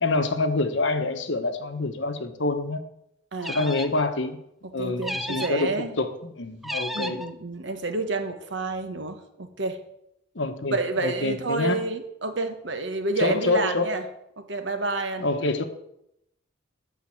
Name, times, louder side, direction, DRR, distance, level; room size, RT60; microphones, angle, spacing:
voice 1, 0.0-2.8 3.4-4.4 4.7-7.2 10.3-11.8 13.2-13.9 15.2-15.6, left 3 dB, 70° left, 8 dB, 1.1 m, -26 dB
voice 2, 3.3-3.7 4.6-6.0 6.9-9.8 10.7-14.0 14.4-15.3, right 3 dB, 70° right, 7 dB, 1.3 m, -29 dB
sound 1, 3.4-4.1 5.0-5.7 6.6-7.3, equal, ahead, 0.5 m, -33 dB
10.5 x 5.6 x 7.8 m, 0.81 s
head